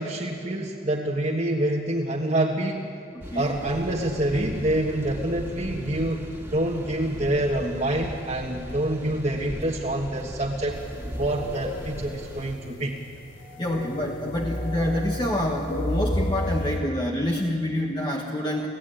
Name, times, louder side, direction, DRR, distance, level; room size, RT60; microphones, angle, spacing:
voice 1, 0.0-2.8 3.3-10.8 11.2-13.0, right 1 dB, 35° right, -3 dB, 1.5 m, -26 dB
sound 1, 3.2-12.6, equal, 10° right, 2.2 m, -38 dB
sound 2, 10.7-16.8, left 1 dB, 85° left, 3.2 m, -32 dB
voice 2, 13.6-18.7, left 1 dB, 20° left, 0 dB, 1.3 m, -27 dB
29.0 x 16.0 x 9.1 m, 2.6 s
head